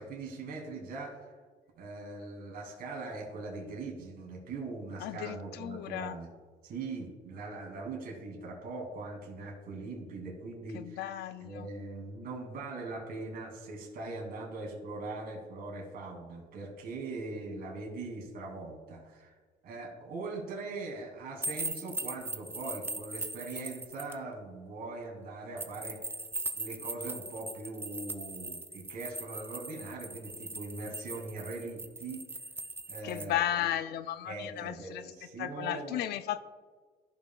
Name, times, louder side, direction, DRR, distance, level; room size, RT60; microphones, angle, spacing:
voice 1, 0.0-1.3 1.8-6.3 6.6-11.1 11.4-19.4 19.6-26.2 26.5-32.3 32.9-33.7 34.2-36.0, right 3 dB, 60° right, -1 dB, 2.5 m, -41 dB
voice 2, 5.0-6.1 10.7-11.7 33.0-35.1 35.4-36.4, left 12 dB, 75° left, 12 dB, 0.5 m, -34 dB
sound 1, 21.4-24.1 25.6-33.3, right 2 dB, 15° right, 0.5 m, -40 dB
14.5 x 5.7 x 2.3 m, 1.5 s
cardioid pair, 110°, 17 cm